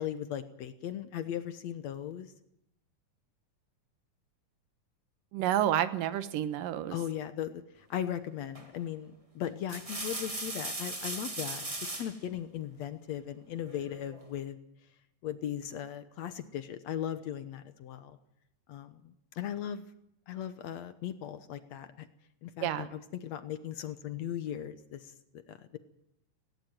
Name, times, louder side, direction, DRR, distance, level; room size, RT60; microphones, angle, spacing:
voice 1, 0.0-2.3 6.9-14.6 15.2-18.2 18.7-19.8 20.3-22.1 22.4-25.1 25.5-25.8, left 10 dB, 65° left, 11 dB, 1.9 m, -38 dB
voice 2, 5.3-7.0 22.6-22.9, right 11 dB, 85° right, 13 dB, 2.8 m, -29 dB
sound 1, 8.5-8.8 9.5-12.2 13.6-14.3, right 2 dB, 20° right, 0.9 m, -38 dB
17.5 x 17.5 x 9.0 m, 0.77 s
omnidirectional pair, 3.8 m